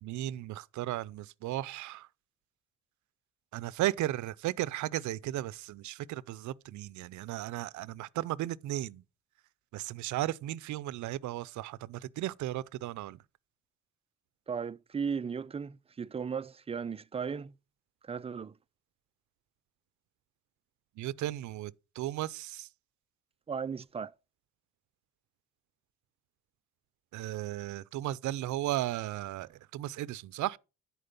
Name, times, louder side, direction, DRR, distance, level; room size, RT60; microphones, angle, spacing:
voice 1, 0.0-2.1 3.5-9.0 9.7-13.2 21.0-22.7 27.1-30.6, right 15 dB, 75° right, 0.5 m, -35 dB
voice 2, 14.5-17.5 18.0-18.6 23.5-24.1, right 6 dB, 20° right, 0.4 m, -36 dB
10.0 x 4.6 x 5.3 m
cardioid pair, 90°, 30 cm